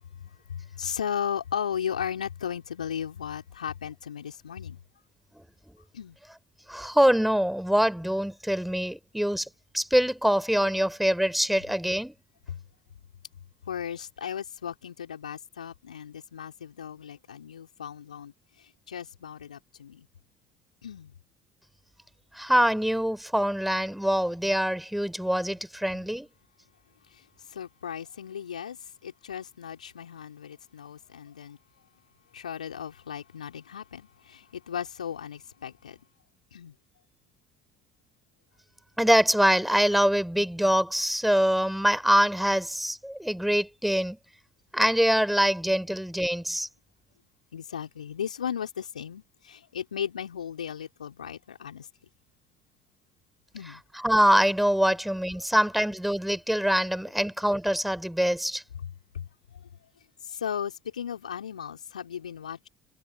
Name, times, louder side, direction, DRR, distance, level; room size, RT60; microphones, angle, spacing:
voice 1, 0.5-4.8 5.9-6.2 13.7-18.3 18.9-20.0 20.8-21.1 27.5-28.8 29.0-31.6 32.3-36.0 36.5-36.7 47.5-51.9 53.5-53.8 59.1-59.2 60.2-62.7, left 8 dB, 80° left, 3.9 m, -36 dB
voice 2, 6.7-9.5 9.7-12.2 22.3-26.3 39.0-44.2 44.7-46.7 53.7-58.6, equal, ahead, 3.8 m, -24 dB
figure-of-eight pair, 60°, 4 cm